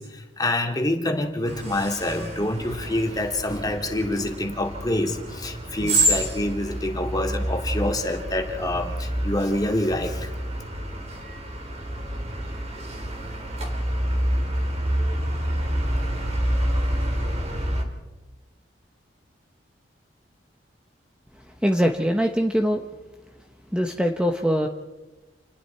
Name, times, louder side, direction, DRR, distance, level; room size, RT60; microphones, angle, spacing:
voice 1, 0.0-10.3, left 1 dB, 20° left, 3 dB, 2.4 m, -26 dB
sound 1, 1.5-17.8, right 1 dB, 35° right, 3.7 m, -28 dB
voice 2, 21.3-22.9 23.7-24.7, equal, 5° right, 4 dB, 1.1 m, -23 dB
29.0 x 20.5 x 4.5 m, 1.1 s
head